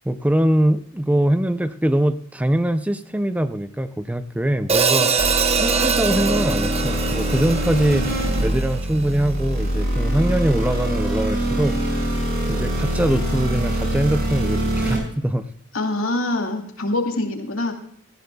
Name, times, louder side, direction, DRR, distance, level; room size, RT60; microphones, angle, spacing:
voice 1, 0.0-12.1 12.5-15.4, right 1 dB, 5° right, 11 dB, 0.5 m, -22 dB
Hi-hat, 4.7-9.0, right 5 dB, 30° right, 0.8 m, -23 dB
sound 1, 5.2-15.0, right 1 dB, 50° right, 5.9 m, -23 dB
voice 2, 15.7-17.7, left 2 dB, 85° left, 3 dB, 2.3 m, -24 dB
17.5 x 14.0 x 2.3 m, 0.62 s
head